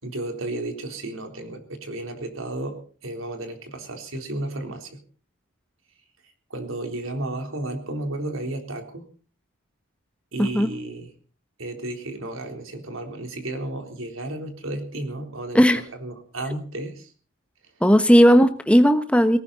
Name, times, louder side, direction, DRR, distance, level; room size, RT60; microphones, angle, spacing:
voice 1, 0.0-5.0 6.5-9.0 10.3-11.1 11.6-17.1, right 2 dB, 80° right, 5 dB, 3.8 m, -33 dB
voice 2, 10.4-10.7 15.5-15.8 17.8-19.4, equal, 5° left, 9 dB, 1.2 m, -16 dB
18.5 x 17.5 x 4.1 m, 0.41 s
head